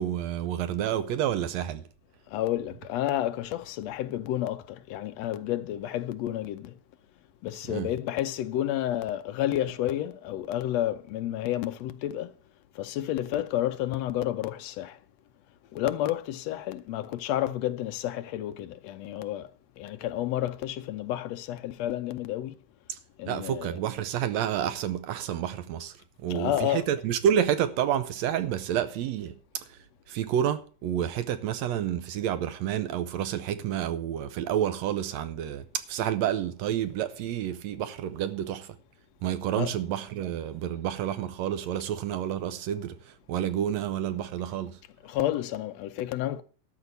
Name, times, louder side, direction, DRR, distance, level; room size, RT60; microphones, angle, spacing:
voice 1, 0.0-1.9 7.7-7.9 22.9-23.0 23.3-29.8 30.1-38.8 39.2-44.8, right 10 dB, 75° right, 1.8 m, -29 dB
voice 2, 2.3-6.7 7.4-12.3 12.8-15.0 15.7-19.5 19.8-22.6 23.2-23.7 26.3-26.9 39.6-39.7 45.0-46.4, left 13 dB, 75° left, 1.8 m, -30 dB
12.5 x 5.0 x 8.1 m
omnidirectional pair, 3.4 m